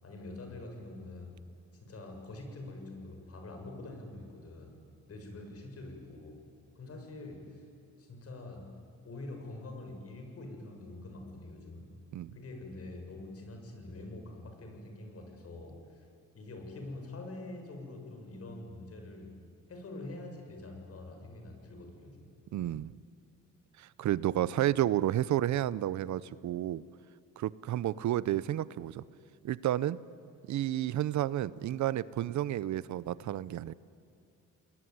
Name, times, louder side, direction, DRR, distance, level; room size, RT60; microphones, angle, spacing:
voice 1, 0.0-1.3 1.7-4.8 5.1-6.4 6.7-7.6 8.0-8.7 9.0-11.9 12.3-16.1 16.3-19.3 19.7-22.3, left 2 dB, 50° left, 4 dB, 6.8 m, -45 dB
voice 2, 22.5-22.9 23.8-26.8 27.4-29.0 29.4-30.0 30.5-33.7, right 12 dB, 70° right, 18 dB, 0.8 m, -31 dB
29.5 x 20.5 x 9.5 m, 2.6 s
cardioid pair, 90°, 30 cm